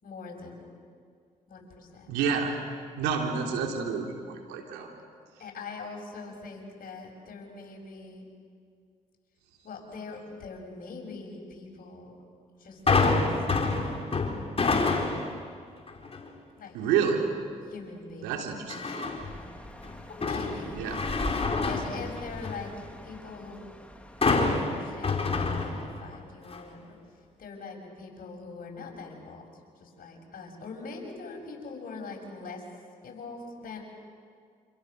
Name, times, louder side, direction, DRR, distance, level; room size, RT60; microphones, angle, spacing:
voice 1, 0.0-0.7 1.5-2.1 3.3-3.5 5.4-8.2 9.6-12.1 12.6-14.0 16.6-16.8 17.7-18.4 20.1-20.8 21.6-22.7 23.0-23.6 24.4-27.0 27.4-29.5 29.8-32.6 33.0-33.8, left 4 dB, 60° left, 1 dB, 6.8 m, -42 dB
voice 2, 2.1-2.6 3.0-4.9 16.7-17.3 18.2-19.1 20.7-21.0, right 6 dB, 85° right, 2 dB, 3.3 m, -29 dB
sound 1, 12.9-15.4 15.9-16.3 18.7-19.4 19.8-22.7 24.2-26.2 26.5-26.6, left 3 dB, 35° left, 4.1 m, -27 dB
sound 2, 19.2-25.1, equal, 5° left, 3.0 m, -42 dB
27.5 x 27.0 x 6.7 m, 2.1 s
hypercardioid pair, 50°, 17 cm